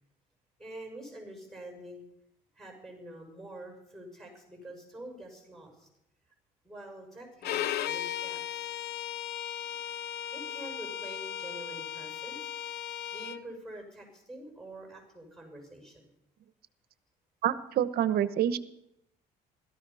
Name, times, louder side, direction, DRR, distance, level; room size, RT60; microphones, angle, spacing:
voice 1, 0.6-2.0 2.5-5.9 6.6-8.7 10.3-12.5 13.1-16.0, right 1 dB, ahead, 3 dB, 6.2 m, -46 dB
Bowed string instrument, 7.4-13.4, left 11 dB, 75° left, 0.6 m, -36 dB
voice 2, 17.4-18.6, right 10 dB, 65° right, 14 dB, 1.0 m, -27 dB
17.0 x 13.5 x 5.6 m, 0.80 s
cardioid pair, 110°, 17 cm